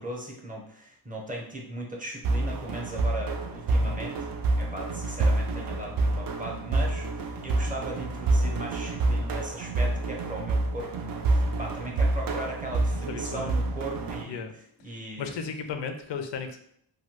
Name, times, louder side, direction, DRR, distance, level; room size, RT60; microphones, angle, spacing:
voice 1, 0.0-4.2 4.6-14.4 14.8-15.3, right 1 dB, 20° right, -1 dB, 0.7 m, -38 dB
sound 1, 2.2-14.2, right 2 dB, 50° right, 0.5 m, -27 dB
voice 2, 13.1-13.5 14.3-14.5 14.9-16.6, left 6 dB, 70° left, 7 dB, 0.6 m, -35 dB
3.3 x 2.2 x 2.8 m, 0.70 s
cardioid pair, 100°, 45 cm